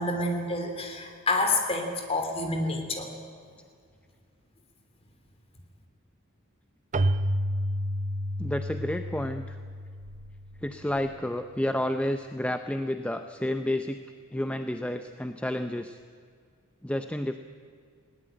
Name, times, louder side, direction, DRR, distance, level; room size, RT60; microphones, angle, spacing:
voice 1, 0.0-3.1, left 2 dB, 30° left, 4 dB, 3.1 m, -28 dB
Keyboard (musical), 6.9-11.4, equal, 35° right, 0.6 m, -31 dB
voice 2, 8.4-9.6 10.6-14.0 14.3-16.0 16.8-17.4, left 1 dB, 5° left, 8 dB, 0.6 m, -30 dB
20.0 x 18.5 x 8.9 m, 2.2 s
head